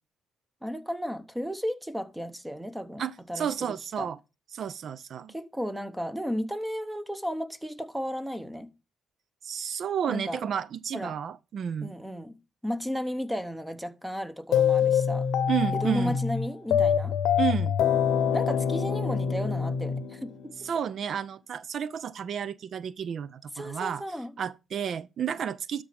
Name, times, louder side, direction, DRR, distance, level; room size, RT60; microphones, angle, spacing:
voice 1, 0.6-4.1 5.3-8.7 10.1-10.4 10.9-11.1 11.8-12.4 12.6-15.3 15.7-17.2 18.3-20.4 23.5-24.3, equal, 5° right, 0.9 m, -34 dB
voice 2, 3.0-4.2 4.5-5.3 9.4-11.9 15.5-16.2 17.4-17.7 20.6-24.0 24.4-25.8, right 8 dB, 60° right, 0.4 m, -31 dB
sound 1, 14.5-20.7, left 7 dB, 80° left, 0.7 m, -25 dB
12.5 x 5.1 x 3.5 m
cardioid pair, 90°, 0 cm